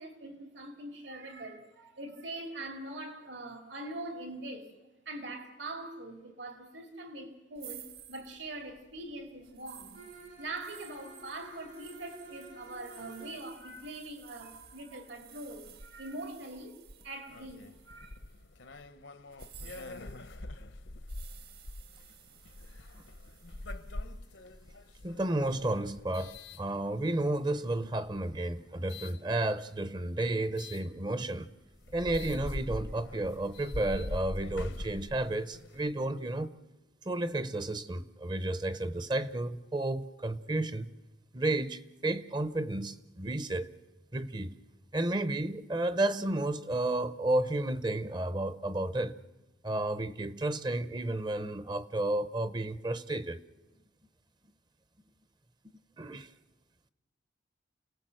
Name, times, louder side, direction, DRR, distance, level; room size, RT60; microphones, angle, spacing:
voice 1, 0.0-4.7 5.0-10.0 10.4-18.2, right 2 dB, 70° right, 2.6 m, -43 dB
sound 1, 7.5-18.5 19.3-24.1, right 9 dB, 55° right, 1.4 m, -55 dB
Bowed string instrument, 9.9-13.5, right 2 dB, 90° right, 7.2 m, -51 dB
sound 2, 17.3-27.3 27.9-29.2 30.6-30.8 31.4-31.5 31.7-35.9, left 2 dB, 70° left, 0.9 m, -43 dB
voice 2, 25.0-31.5 31.9-36.5 37.0-40.9 41.3-43.7 44.1-44.5 44.9-49.2 49.6-53.4 56.0-56.3, right 1 dB, 20° right, 0.7 m, -32 dB
29.5 x 18.5 x 7.7 m
head